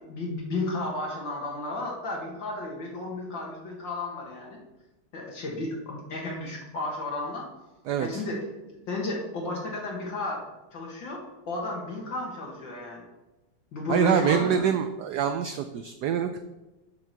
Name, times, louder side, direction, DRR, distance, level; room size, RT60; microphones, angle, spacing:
voice 1, 0.0-4.6 5.1-7.5 8.0-10.4 10.7-13.0 13.7-14.7, left 2 dB, 60° left, -2 dB, 2.3 m, -33 dB
voice 2, 7.9-8.2 13.9-16.4, right 8 dB, 85° right, 8 dB, 0.9 m, -25 dB
7.7 x 5.9 x 6.8 m, 1.0 s
omnidirectional pair, 2.3 m